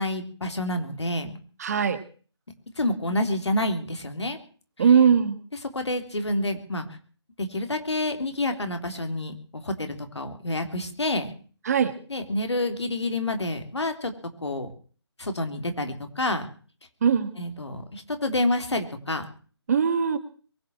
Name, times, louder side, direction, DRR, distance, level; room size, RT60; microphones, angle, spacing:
voice 1, 0.0-1.4 2.8-4.4 4.8-4.9 5.7-6.9 7.4-11.3 12.1-14.1 14.4-14.7 15.2-16.5 17.4-19.3, left 1 dB, 75° left, 7 dB, 3.5 m, -28 dB
voice 2, 1.6-2.0 4.8-5.4 11.7-11.9 17.0-17.3 19.7-20.2, right 7 dB, 35° right, 11 dB, 1.6 m, -20 dB
22.5 x 7.7 x 7.7 m, 0.41 s
figure-of-eight pair, 155°, 15 cm